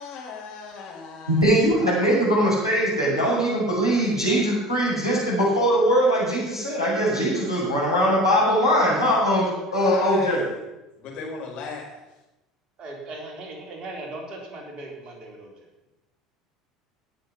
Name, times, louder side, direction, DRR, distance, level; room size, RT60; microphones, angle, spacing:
voice 1, 0.0-2.0 9.7-10.5 11.0-12.0, left 5 dB, 45° left, -2 dB, 4.8 m, -37 dB
voice 2, 1.3-10.4, equal, 90° left, -8 dB, 5.7 m, -21 dB
voice 3, 12.8-15.6, right 2 dB, 40° right, 0 dB, 3.7 m, -38 dB
18.0 x 6.8 x 5.9 m, 1.0 s
figure-of-eight pair, 65°, 2 cm